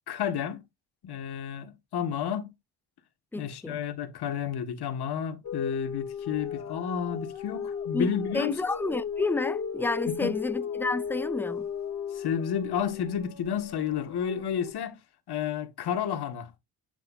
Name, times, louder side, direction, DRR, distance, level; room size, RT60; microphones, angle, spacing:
voice 1, 0.1-0.6 1.0-2.5 3.4-8.6 10.2-10.3 12.1-15.0 15.3-16.5, left 8 dB, 50° left, 1.8 m, -31 dB
voice 2, 3.3-3.8 7.9-8.1 8.3-11.7, left 2 dB, 5° left, 0.4 m, -30 dB
sound 1, 5.4-14.7, left 7 dB, 35° left, 2.8 m, -35 dB
8.3 x 7.6 x 2.6 m
cardioid pair, 105°, 49 cm